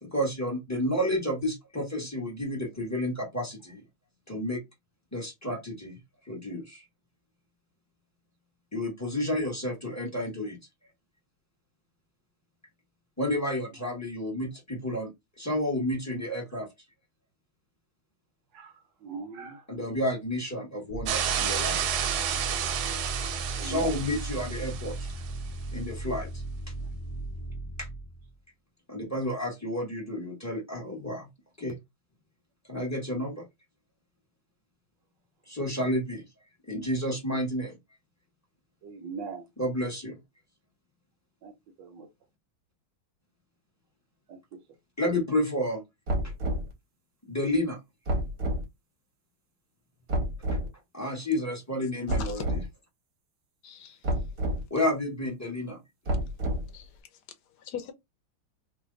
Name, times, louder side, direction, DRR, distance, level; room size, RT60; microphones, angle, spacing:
voice 1, 0.0-3.8 4.3-4.6 5.1-6.0 6.3-6.8 8.7-10.6 13.2-15.1 15.4-16.7 19.7-21.8 23.6-25.1 25.7-26.4 27.8-27.9 28.9-31.3 31.6-31.8 32.7-33.4 35.5-36.2 36.7-37.7 39.6-40.2 45.0-45.8 47.3-47.8 50.9-52.6 54.7-55.8, left 1 dB, 15° left, 0.6 m, -30 dB
voice 2, 19.0-19.6 23.6-23.9 38.8-39.4 41.4-41.5 41.8-42.1 44.3-44.4, right 5 dB, 70° right, 1.2 m, -38 dB
sound 1, 20.9-28.3, right 2 dB, 90° left, 0.4 m, -36 dB
sound 2, 21.1-25.3, right 9 dB, 85° right, 1.5 m, -31 dB
sound 3, 46.1-46.7 48.1-48.6 50.1-50.7 52.1-52.7 54.0-54.6 56.1-56.8, right 1 dB, 50° right, 0.9 m, -29 dB
voice 3, 53.6-54.1 56.7-57.0 57.6-57.9, left 9 dB, 70° left, 1.1 m, -40 dB
3.3 x 2.1 x 3.7 m
omnidirectional pair, 2.3 m